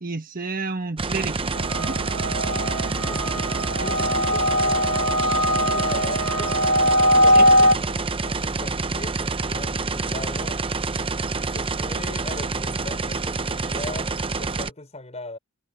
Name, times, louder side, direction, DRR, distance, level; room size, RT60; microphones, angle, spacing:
voice 1, 0.0-2.0 7.4-7.5, right 3 dB, 40° right, 1.4 m, -31 dB
sound 1, 1.0-14.7, right 3 dB, 25° right, 0.7 m, -27 dB
sound 2, 1.6-7.7, equal, 90° right, 1.5 m, -21 dB
voice 2, 3.0-6.6 7.2-10.6 11.3-15.4, left 2 dB, 30° left, 5.7 m, -39 dB
head